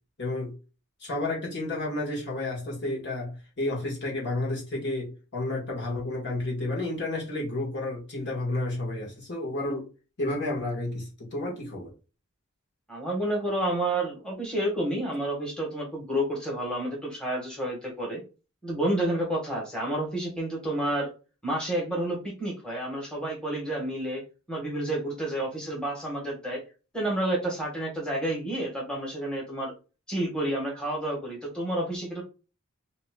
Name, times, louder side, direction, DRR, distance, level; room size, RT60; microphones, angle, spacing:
voice 1, 0.2-0.6 1.0-9.9 10.2-11.9, left 2 dB, 55° left, 1.9 m, -31 dB
voice 2, 12.9-18.2 18.6-21.1 21.4-24.2 24.5-26.6 26.9-29.7 30.1-32.2, right 1 dB, 5° left, 1.5 m, -30 dB
5.4 x 3.0 x 2.4 m
head